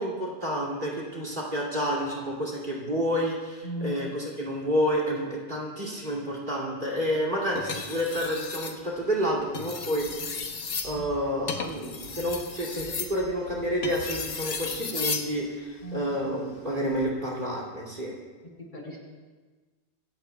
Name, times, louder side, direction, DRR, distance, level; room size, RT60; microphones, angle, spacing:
voice 1, 0.0-10.4 10.8-18.1, equal, 45° right, -2 dB, 2.9 m, -29 dB
voice 2, 3.6-4.0 10.9-11.0 15.8-16.1 18.6-19.0, equal, 45° left, -2 dB, 3.5 m, -36 dB
sound 1, 7.6-8.8 9.4-15.3 16.8-17.1, left 5 dB, 85° left, 1.4 m, -34 dB
26.0 x 15.5 x 2.3 m, 1.4 s
omnidirectional pair, 1.2 m